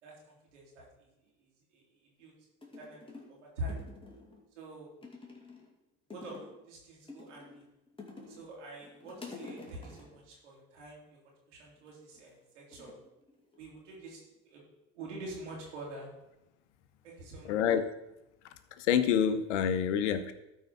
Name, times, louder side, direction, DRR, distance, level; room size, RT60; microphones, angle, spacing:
voice 1, 0.0-1.1 1.7-2.3 2.8-3.0 3.4-3.8 4.5-4.9 6.1-6.4 6.6-7.6 8.3-11.2 11.5-12.9 13.6-14.6 14.9-16.1 17.0-17.6, right 1 dB, 90° right, -3 dB, 3.3 m, -45 dB
sound 1, 2.2-2.3 2.6-3.4 3.7-4.4 5.0-5.7 6.1-6.6 7.1-8.5 8.8-10.2 11.8-12.2 12.7-13.8 14.1-14.6, left 3 dB, 15° left, 2.4 m, -49 dB
voice 2, 17.4-17.8 18.8-20.3, left 8 dB, 80° left, 11 dB, 0.9 m, -27 dB
12.5 x 4.7 x 5.6 m, 0.92 s
hypercardioid pair, 80°, 35 cm